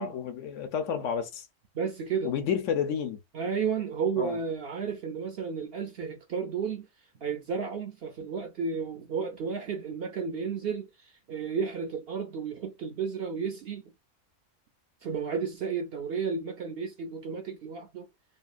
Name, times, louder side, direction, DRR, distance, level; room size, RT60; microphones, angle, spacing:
voice 1, 0.0-1.5 2.2-3.2 4.2-4.4, left 7 dB, 70° left, 0.9 m, -30 dB
voice 2, 1.7-2.3 3.3-6.9 7.2-13.8 15.0-18.1, right 6 dB, 65° right, 0.6 m, -32 dB
2.8 x 2.3 x 2.4 m
omnidirectional pair, 1.4 m